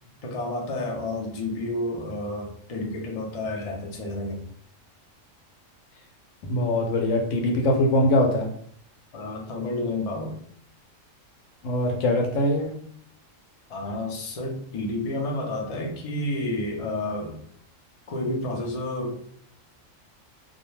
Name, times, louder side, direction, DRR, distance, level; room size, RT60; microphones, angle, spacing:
voice 1, 0.2-4.4 9.1-10.4 13.7-17.4 18.1-19.3, left 2 dB, 50° left, -1 dB, 0.4 m, -30 dB
voice 2, 6.5-8.5 11.6-12.7, left 1 dB, 70° left, 2 dB, 0.9 m, -22 dB
2.3 x 2.2 x 3.0 m, 0.63 s
omnidirectional pair, 1.4 m